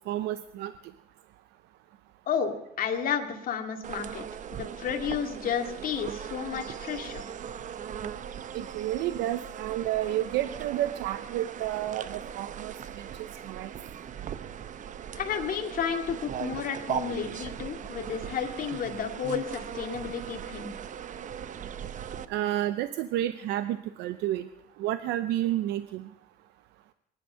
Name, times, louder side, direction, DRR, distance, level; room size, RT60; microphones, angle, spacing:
voice 1, 0.1-0.7 8.5-13.7 22.3-24.5 24.8-26.1, right 13 dB, 85° right, 12 dB, 0.7 m, -31 dB
voice 2, 2.3-4.2 4.5-7.2 15.1-20.7, left 7 dB, 55° left, 5 dB, 2.3 m, -32 dB
sound 1, 3.8-22.2, right 8 dB, 50° right, 0.9 m, -39 dB
23.0 x 11.0 x 5.7 m, 0.90 s
cardioid pair, 110°, 17 cm